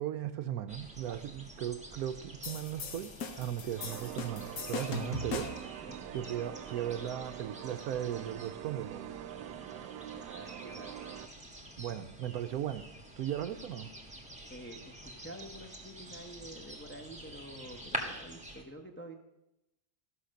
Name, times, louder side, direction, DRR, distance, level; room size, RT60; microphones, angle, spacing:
voice 1, 0.0-9.1 11.8-12.9 13.2-13.9, right 11 dB, 70° right, 10 dB, 1.0 m, -37 dB
sound 1, 0.7-18.6, right 1 dB, 5° right, 1.2 m, -47 dB
sound 2, 2.4-5.7, left 4 dB, 60° left, 1.4 m, -40 dB
sound 3, 3.8-11.3, right 11 dB, 90° right, 1.2 m, -44 dB
voice 2, 10.1-10.9 14.5-19.1, right 1 dB, 10° left, 2 dB, 0.6 m, -48 dB
14.0 x 5.8 x 6.4 m, 0.90 s
omnidirectional pair, 1.8 m